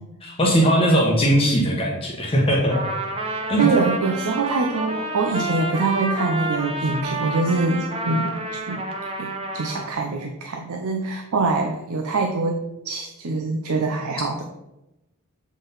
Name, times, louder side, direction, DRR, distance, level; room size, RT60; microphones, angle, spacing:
voice 1, 0.2-2.8 3.5-3.7, equal, 25° left, -2 dB, 0.9 m, -19 dB
Trumpet, 2.7-9.9, right 2 dB, 25° right, 0.8 m, -29 dB
voice 2, 3.6-8.9 9.2-9.3 9.5-12.6 12.8-14.5, right 3 dB, 70° right, 3 dB, 0.6 m, -24 dB
7.1 x 3.8 x 4.0 m, 0.94 s
head